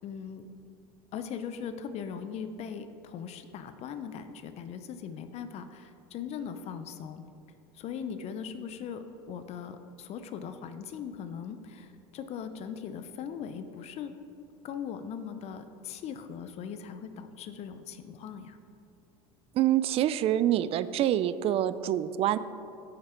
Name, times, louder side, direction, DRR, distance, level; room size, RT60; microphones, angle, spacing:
voice 1, 0.0-0.5 1.1-7.2 7.7-14.1 14.6-18.6, left 7 dB, 50° left, 10 dB, 0.5 m, -39 dB
voice 2, 19.5-22.4, right 12 dB, 45° right, 15 dB, 0.4 m, -26 dB
8.5 x 5.8 x 4.4 m, 2.6 s
supercardioid pair, 95°, 14 cm